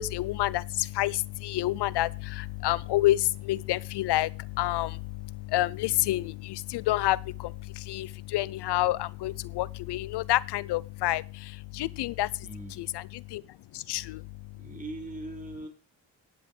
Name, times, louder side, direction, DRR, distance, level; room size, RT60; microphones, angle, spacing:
voice 1, 0.0-12.5 12.8-13.4 13.7-14.2, left 16 dB, 70° left, 0.5 m, -29 dB
voice 2, 12.4-12.9 13.9-14.1 14.6-15.7, right 2 dB, 20° right, 4.9 m, -41 dB
16.0 x 9.9 x 3.2 m
cardioid pair, 75°, 42 cm